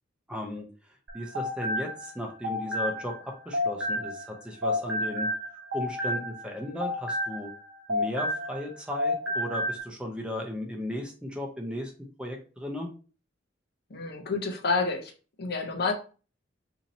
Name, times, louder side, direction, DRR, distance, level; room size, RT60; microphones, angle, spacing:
voice 1, 0.3-0.7 1.1-5.3 5.7-7.5 7.9-11.9 12.2-12.9, left 1 dB, 5° right, 0 dB, 0.6 m, -35 dB
sound 1, 1.1-4.3 4.6-8.7 9.0-9.8, left 1 dB, 80° right, 0.9 m, -31 dB
voice 2, 13.9-15.1 15.4-15.9, left 4 dB, 55° left, 4 dB, 0.7 m, -29 dB
2.8 x 2.7 x 3.9 m, 0.36 s
head